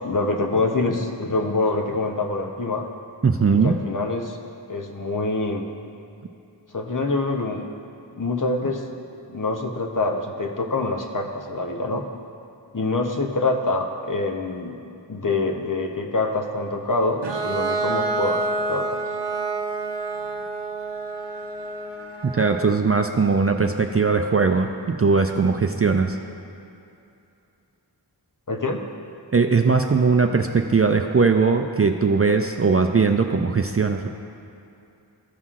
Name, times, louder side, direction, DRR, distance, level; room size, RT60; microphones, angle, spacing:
voice 1, 0.0-2.9 3.6-4.4 4.7-5.7 6.7-7.7 8.1-8.8 9.3-12.0 12.7-14.8 15.1-19.0 28.5-28.8, left 3 dB, 45° left, 2 dB, 0.8 m, -25 dB
voice 2, 3.2-3.7 22.3-26.2 29.3-34.1, right 4 dB, 35° right, 4 dB, 0.4 m, -20 dB
Bowed string instrument, 17.2-22.8, right 3 dB, 65° right, 0.7 m, -28 dB
15.0 x 5.6 x 2.5 m, 2.7 s
wide cardioid pair, 50°, 45 cm